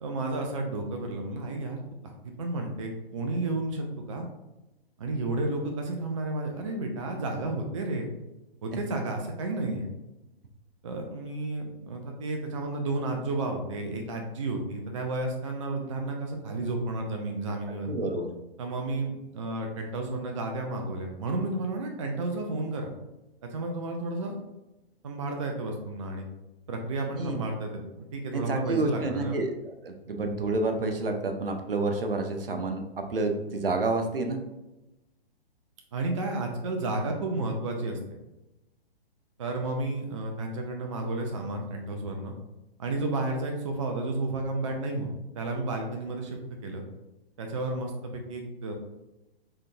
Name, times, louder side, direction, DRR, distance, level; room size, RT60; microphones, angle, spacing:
voice 1, 0.0-1.8 2.2-4.3 5.0-8.1 8.6-9.9 10.8-17.9 18.6-22.9 23.4-24.4 25.0-26.3 26.7-29.4 35.9-38.0 39.4-42.3 42.8-45.1 45.3-46.8 47.4-48.7, right 2 dB, 35° right, 3 dB, 0.4 m, -32 dB
voice 2, 17.9-18.3 27.1-27.4 28.3-32.8 33.1-34.4, right 2 dB, 65° right, 5 dB, 0.6 m, -29 dB
3.6 x 3.3 x 2.6 m, 1.0 s
figure-of-eight pair, 120°, 31 cm